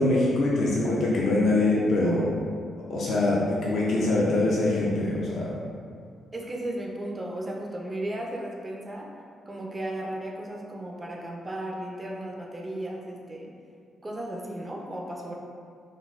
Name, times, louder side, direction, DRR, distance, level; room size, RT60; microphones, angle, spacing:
voice 1, 0.0-2.3 2.9-3.4 3.7-5.5, left 2 dB, 60° left, -5 dB, 0.5 m, -23 dB
voice 2, 6.3-9.1 9.5-13.5 14.0-15.3, right 1 dB, 25° right, -1 dB, 0.5 m, -35 dB
3.8 x 2.3 x 2.4 m, 2.3 s
cardioid pair, 90°, 0 cm